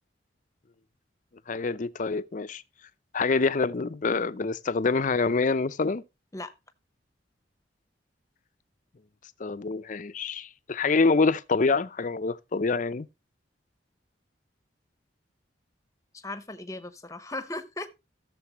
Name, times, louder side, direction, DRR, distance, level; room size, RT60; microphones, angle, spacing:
voice 1, 1.5-2.6 3.1-6.0 9.4-13.1, left 4 dB, 45° left, 0.5 m, -26 dB
voice 2, 16.1-18.0, left 2 dB, 15° left, 0.9 m, -37 dB
14.5 x 6.8 x 2.9 m
head